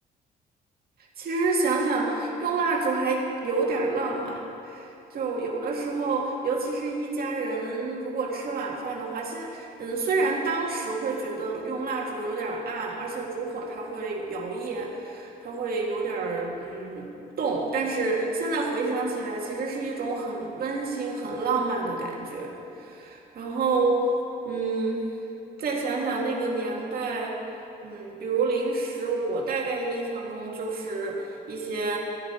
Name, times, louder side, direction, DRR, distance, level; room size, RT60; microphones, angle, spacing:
voice 1, 1.2-17.1 17.4-22.5 22.8-24.1 24.4-25.1 25.6-27.4 27.8-32.0, right 3 dB, 65° right, -2 dB, 2.0 m, -28 dB
14.5 x 12.0 x 4.4 m, 2.8 s
cardioid pair, 105°, 17 cm